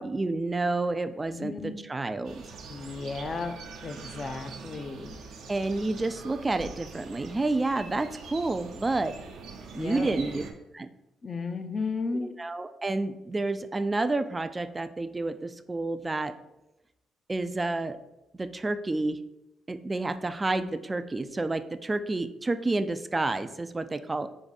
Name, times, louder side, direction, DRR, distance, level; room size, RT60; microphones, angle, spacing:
voice 1, 0.0-1.5 1.9-2.5 5.5-9.1 9.7-10.4 10.7-10.9 12.1-16.3 17.3-18.0 18.4-19.2 19.7-24.3, right 2 dB, 20° right, 10 dB, 0.3 m, -29 dB
voice 2, 1.3-1.8 2.7-3.5 3.8-5.2 9.8-10.1 11.2-12.3, left 4 dB, 40° left, 8 dB, 0.5 m, -34 dB
sound 1, 2.2-10.5, right 4 dB, 75° right, 0.6 m, -44 dB
4.7 x 2.6 x 4.0 m, 0.93 s
cardioid pair, 90°, 0 cm